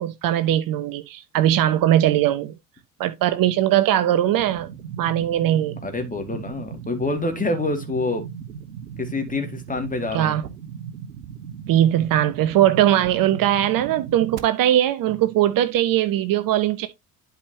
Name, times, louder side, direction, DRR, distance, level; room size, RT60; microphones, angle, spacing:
voice 1, 0.0-2.6 3.0-4.7 5.0-5.8 10.1-10.4 11.7-16.9, right 12 dB, 45° right, 1.1 m, -20 dB
sound 1, 4.4-14.4, right 7 dB, 75° right, 1.2 m, -37 dB
voice 2, 5.8-8.3 9.0-10.4, left 2 dB, 15° left, 2.3 m, -26 dB
11.5 x 5.0 x 2.9 m
figure-of-eight pair, 60°, 47 cm